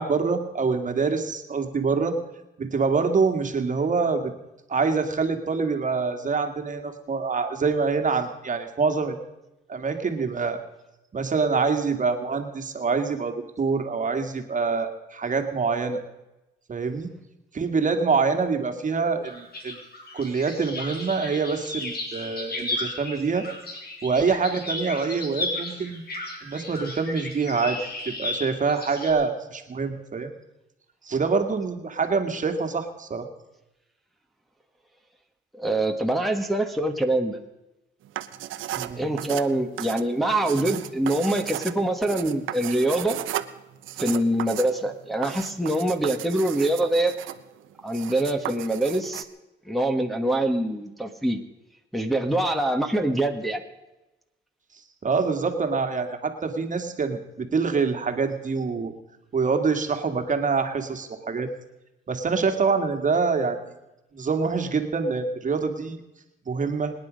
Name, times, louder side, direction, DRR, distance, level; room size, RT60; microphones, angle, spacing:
voice 1, 0.0-2.2 2.6-4.3 4.7-9.2 9.7-10.6 11.1-16.0 16.7-17.1 17.5-19.8 20.1-23.5 24.0-26.0 26.4-27.8 28.1-30.3 31.0-33.3 38.7-39.1 55.0-58.9 59.3-61.5 62.1-63.6 64.1-66.0 66.5-66.9, right 4 dB, 40° right, 6 dB, 2.0 m, -25 dB
sound 1, 19.2-29.1, left 2 dB, 50° left, 4.6 m, -34 dB
voice 2, 35.5-37.4 39.0-43.2 44.0-47.1 47.8-49.3 49.6-51.4 51.9-53.6, right 1 dB, ahead, 2 dB, 1.6 m, -24 dB
sound 2, 38.0-49.2, right 13 dB, 80° right, 0.9 m, -35 dB
25.5 x 10.0 x 5.2 m, 0.97 s
cardioid pair, 90°, 20 cm